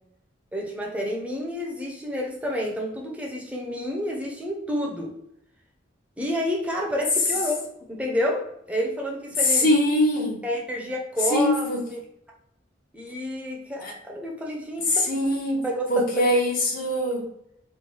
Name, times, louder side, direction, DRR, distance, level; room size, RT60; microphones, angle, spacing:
voice 1, 0.5-5.1 6.2-9.7 10.4-12.0 12.9-15.1 15.6-16.1, equal, 5° right, -1 dB, 0.6 m, -29 dB
voice 2, 9.4-10.4 11.3-11.8 13.8-13.9 14.9-15.6 15.9-17.2, left 1 dB, 50° left, -1 dB, 1.0 m, -22 dB
3.1 x 2.2 x 3.7 m, 0.76 s
head